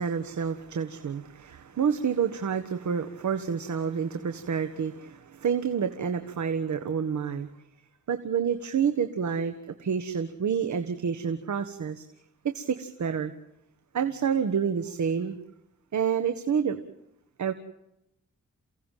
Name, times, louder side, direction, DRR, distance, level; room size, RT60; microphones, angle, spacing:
voice 1, 0.0-7.5 8.1-9.5 9.8-12.0 12.4-13.3 13.9-15.4 15.9-16.8 17.4-17.5, right 7 dB, 70° right, 8 dB, 1.6 m, -28 dB
29.0 x 17.0 x 7.5 m, 0.83 s
wide cardioid pair, 95°, 30 cm